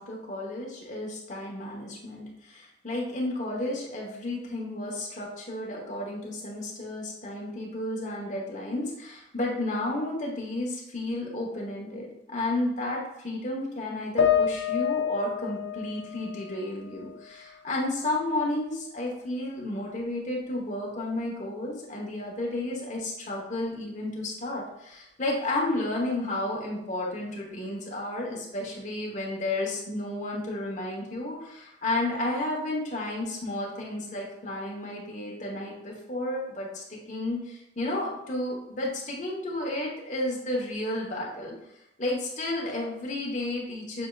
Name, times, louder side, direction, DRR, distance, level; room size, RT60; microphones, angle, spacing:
voice 1, 0.0-41.6 42.0-44.1, left 1 dB, 40° left, -2 dB, 1.1 m, -32 dB
sound 1, 14.2-17.6 18.0-19.0, left 8 dB, 80° left, 0.5 m, -29 dB
6.3 x 3.5 x 2.4 m, 0.83 s
head